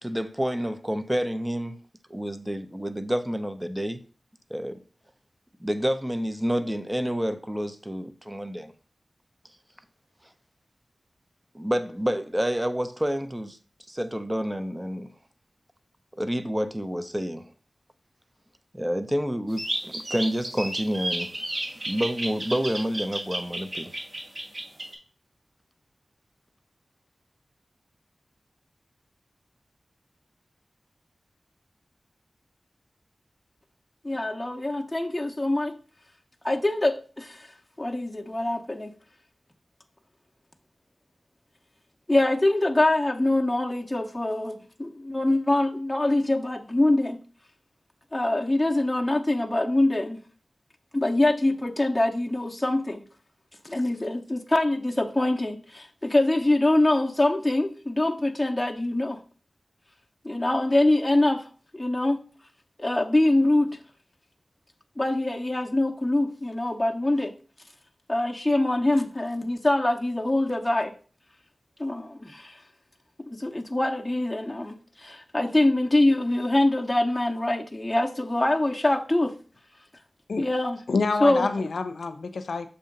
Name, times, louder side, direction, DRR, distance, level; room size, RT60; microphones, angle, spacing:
voice 1, 0.0-1.8 2.1-4.0 4.5-4.8 5.6-8.7 11.5-13.6 13.9-15.1 16.2-17.5 18.7-21.3 21.9-23.9, equal, 15° right, 0.7 m, -28 dB
sound 1, 19.5-25.0, right 1 dB, 55° right, 1.7 m, -32 dB
voice 2, 34.0-35.8 36.4-37.5 37.8-38.9 42.1-47.2 48.1-50.2 50.9-53.0 53.6-59.2 60.2-61.4 61.7-62.2 62.8-63.8 65.0-67.3 68.1-70.9 71.8-72.6 73.3-79.3 80.4-80.8 81.2-81.7, left 1 dB, 20° left, 0.7 m, -24 dB
voice 3, 80.9-82.7, left 4 dB, 90° left, 0.5 m, -27 dB
6.8 x 2.8 x 5.1 m
cardioid pair, 45°, 0 cm